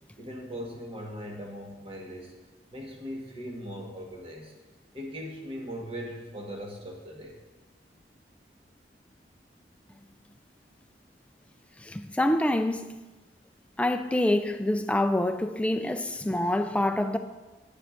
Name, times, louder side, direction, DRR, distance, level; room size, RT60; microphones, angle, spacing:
voice 1, 0.2-2.3 2.7-4.5 4.9-7.3, equal, 30° right, 1.4 m, -39 dB
voice 2, 11.8-12.9 13.8-17.2, left 1 dB, 5° left, 0.3 m, -26 dB
10.0 x 9.8 x 2.5 m
head